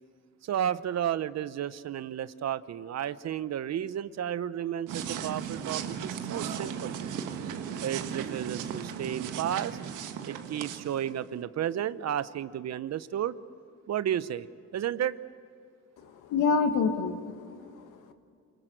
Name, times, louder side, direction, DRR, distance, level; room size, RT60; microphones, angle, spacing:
voice 1, 0.4-6.9 7.8-9.8 10.3-13.4 13.9-14.5 14.7-15.2, right 10 dB, 60° right, 15 dB, 0.9 m, -32 dB
sound 1, 4.9-11.3, right 8 dB, 90° right, 1.5 m, -36 dB
voice 2, 16.0-18.1, left 5 dB, 90° left, 7 dB, 1.8 m, -28 dB
28.0 x 20.5 x 8.0 m, 2.3 s
cardioid pair, 90°, 30 cm